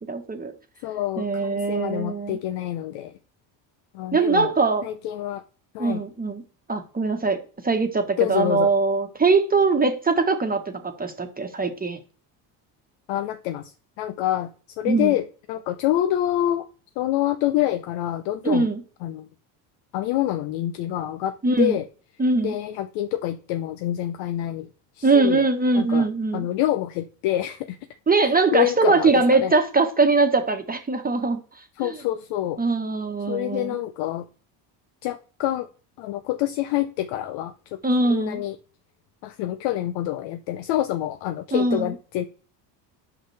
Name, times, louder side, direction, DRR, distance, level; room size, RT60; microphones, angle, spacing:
voice 1, 0.1-0.5 1.2-2.4 4.1-4.8 5.8-6.4 6.7-12.0 14.9-15.1 18.4-18.8 21.4-21.8 22.2-22.5 25.0-26.4 28.1-31.9 32.6-33.8 37.8-38.4 41.5-41.9, right 3 dB, 20° right, 1.2 m, -22 dB
voice 2, 0.8-3.1 3.9-4.5 4.8-5.4 5.7-6.0 8.2-8.7 13.1-16.7 17.0-18.7 19.0-19.3 19.9-21.9 22.4-24.7 24.9-25.4 25.7-26.1 26.3-27.8 28.2-29.6 31.8-32.6 33.3-34.3 35.0-35.7 36.0-37.8 38.1-38.6 39.2-42.2, left 13 dB, 75° left, 0.7 m, -27 dB
8.2 x 5.9 x 3.3 m
supercardioid pair, 85°, 46 cm